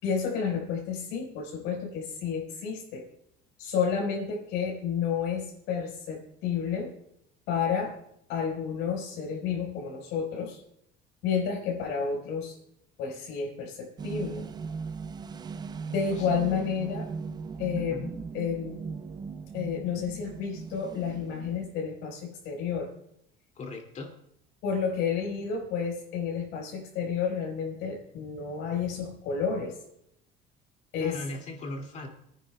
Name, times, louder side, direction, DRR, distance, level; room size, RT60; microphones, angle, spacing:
voice 1, 0.0-3.1 3.6-6.9 7.5-7.9 8.3-10.6 11.2-12.6 13.0-14.5 15.9-17.1 17.6-18.8 19.5-22.9 24.6-29.8 30.9-31.2, left 6 dB, 85° left, 0 dB, 4.3 m, -31 dB
sound 1, 14.0-21.9, right 5 dB, 20° right, 0.4 m, -38 dB
voice 2, 23.6-24.2 31.0-32.1, left 2 dB, 40° left, 2 dB, 2.3 m, -38 dB
27.5 x 10.0 x 2.2 m, 0.74 s
cardioid pair, 135°, 19 cm